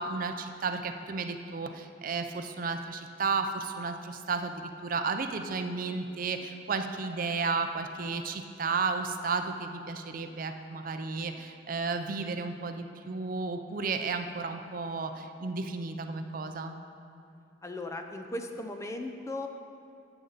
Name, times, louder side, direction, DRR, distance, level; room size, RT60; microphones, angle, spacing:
voice 1, 0.0-16.8, right 4 dB, 45° right, 7 dB, 0.5 m, -33 dB
voice 2, 17.6-19.5, left 1 dB, 15° left, 4 dB, 0.5 m, -37 dB
12.5 x 7.8 x 4.0 m, 2.6 s
head